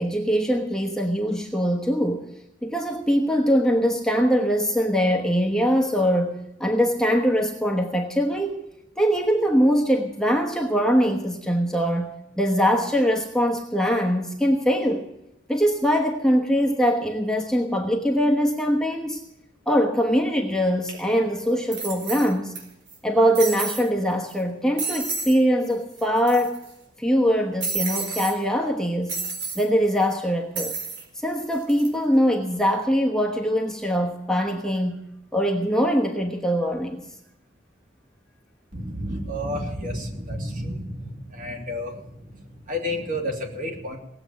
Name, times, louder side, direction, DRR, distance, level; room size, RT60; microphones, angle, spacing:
voice 1, 0.0-2.3 2.6-8.6 9.0-15.1 15.5-19.2 19.7-22.5 23.0-26.6 27.0-29.1 29.6-30.7 31.2-35.0 35.3-37.0, equal, 5° left, 0 dB, 1.2 m, -22 dB
sound 1, 20.9-21.0 21.7-22.6 22.9-23.0 23.3-23.9 24.3-24.4 24.8-25.4 25.6-25.7 26.0-26.7 27.6-28.3 29.1-29.6 30.5-31.0 31.5-31.9, right 4 dB, 85° right, 4.8 m, -30 dB
voice 2, 38.7-44.0, left 1 dB, 45° right, 1 dB, 3.0 m, -31 dB
18.5 x 7.9 x 9.2 m, 0.87 s
head